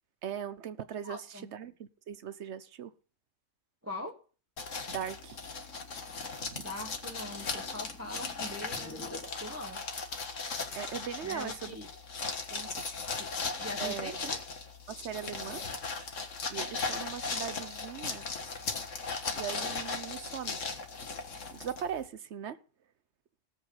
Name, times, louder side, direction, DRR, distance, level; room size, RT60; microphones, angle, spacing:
voice 1, 0.2-2.9 4.9-5.4 6.4-6.6 10.7-11.8 12.5-12.7 13.8-14.2 14.9-15.6 16.5-18.3 19.3-20.6 21.5-22.6, right 9 dB, 60° right, 1.1 m, -39 dB
voice 2, 1.0-1.5 3.8-4.1 6.6-9.9 11.2-11.9 13.2-13.3 13.6-14.4, left 1 dB, 10° right, 1.3 m, -42 dB
sound 1, 4.6-22.1, left 4 dB, 70° left, 1.9 m, -38 dB
sound 2, 4.9-10.2, left 1 dB, 10° left, 1.4 m, -51 dB
18.0 x 7.9 x 5.4 m
omnidirectional pair, 1.4 m